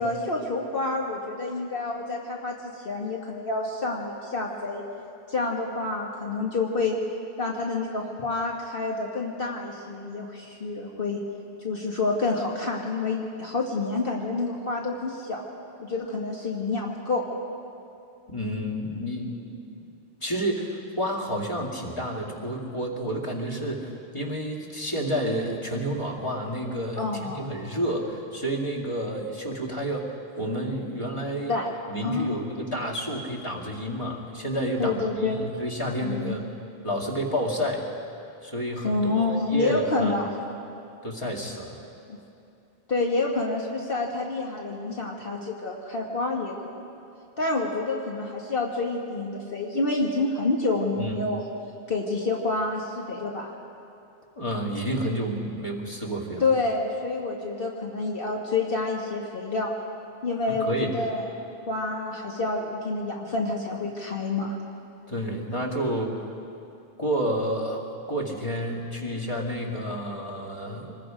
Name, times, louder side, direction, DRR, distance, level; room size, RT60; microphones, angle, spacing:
voice 1, 0.0-4.8 5.3-7.0 7.4-11.2 11.6-15.4 15.8-17.2 27.0-27.5 31.5-31.7 32.0-32.4 34.8-35.4 36.0-36.4 38.8-40.3 42.1-42.2 42.9-46.9 47.4-51.4 51.9-53.5 56.4-59.7 60.2-64.5, left 3 dB, 60° left, -2 dB, 1.7 m, -28 dB
voice 2, 18.3-19.5 20.2-30.0 30.4-31.5 31.9-36.4 36.8-37.8 38.4-40.2 41.0-41.8 51.0-51.2 54.4-56.4 60.5-60.9 65.1-66.1 67.0-70.9, equal, 30° left, -1 dB, 2.4 m, -30 dB
25.0 x 20.5 x 5.1 m, 2.7 s
omnidirectional pair, 1.1 m